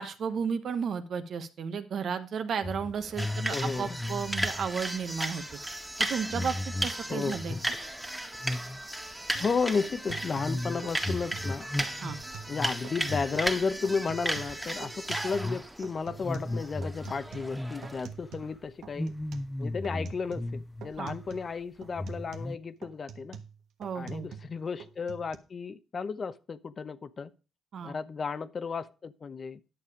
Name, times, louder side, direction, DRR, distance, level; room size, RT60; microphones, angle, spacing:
voice 1, 0.0-5.4 6.0-6.6 6.8-7.6 12.0-12.2 21.0-21.2 23.8-24.3 27.7-27.9, right 6 dB, 60° right, 1.2 m, -33 dB
sound 1, 2.6-8.1 8.3-8.8 9.1-14.0 14.3-14.8 15.3-15.7 16.1-18.1 18.4-18.6 18.9-21.0 21.3-21.4 21.9-22.6, left 1 dB, 10° left, 0.6 m, -36 dB
sound 2, 3.2-18.0, right 1 dB, 10° right, 1.8 m, -35 dB
voice 2, 3.5-4.0 7.1-7.7 9.4-11.7 12.5-19.1 19.6-23.4 23.9-27.3 27.8-29.6, left 5 dB, 40° left, 0.8 m, -33 dB
sound 3, 9.3-9.5 9.8-11.5 11.8-12.6 12.8-13.5 13.8-15.6 15.8-18.6 18.8-19.5 19.8-20.6 20.8-21.5 21.8-24.5 24.8-25.4, right 7 dB, 80° right, 1.2 m, -46 dB
10.5 x 6.9 x 4.9 m
cardioid pair, 90°, 0 cm